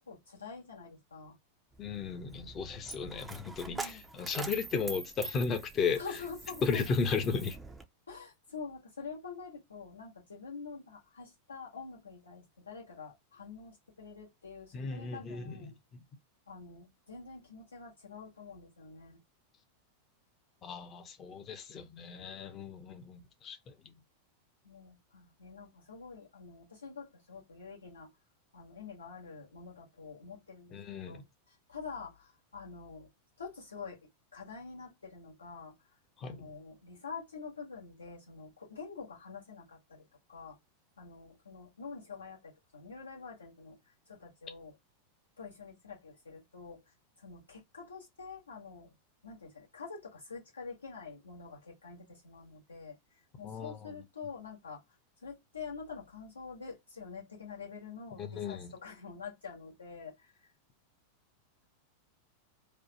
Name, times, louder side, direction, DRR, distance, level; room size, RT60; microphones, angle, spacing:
voice 1, 0.0-1.4 3.7-4.0 6.0-6.9 8.1-15.7 16.5-19.2 22.5-22.7 24.6-28.1 28.5-31.2 31.7-33.1 33.4-34.0 34.3-35.7 36.2-40.6 41.0-43.8 44.1-44.7 45.4-46.8 47.2-48.9 49.2-53.0 53.4-54.8 55.2-60.3, left 5 dB, 75° left, 1.6 m, -46 dB
Coin (dropping), 1.7-7.8, right 3 dB, 10° right, 0.6 m, -45 dB
voice 2, 1.8-6.0 6.6-7.6 14.7-16.0 20.6-23.9 30.7-31.2 36.2-36.4 53.4-54.0 58.2-58.7, left 5 dB, 30° left, 0.9 m, -35 dB
3.3 x 2.4 x 4.2 m
figure-of-eight pair, 90°, 0 cm